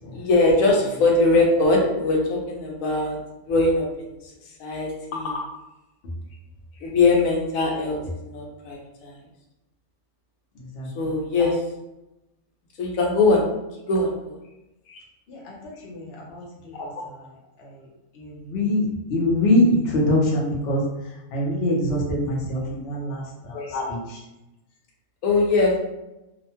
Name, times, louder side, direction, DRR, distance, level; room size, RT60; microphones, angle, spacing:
voice 1, 0.1-3.2 3.5-4.1 4.6-5.4 6.8-8.0 8.2-9.2 10.9-11.6 12.8-13.5 13.9-14.3 14.9-15.0 16.7-16.9 23.5-23.8 25.2-25.8, left 3 dB, 90° left, -1 dB, 1.1 m, -21 dB
voice 2, 15.8-16.4 16.8-16.9 18.2-20.8 21.3-23.6, left 1 dB, 55° left, -3 dB, 0.9 m, -23 dB
2.7 x 2.2 x 2.8 m, 0.93 s
omnidirectional pair, 1.4 m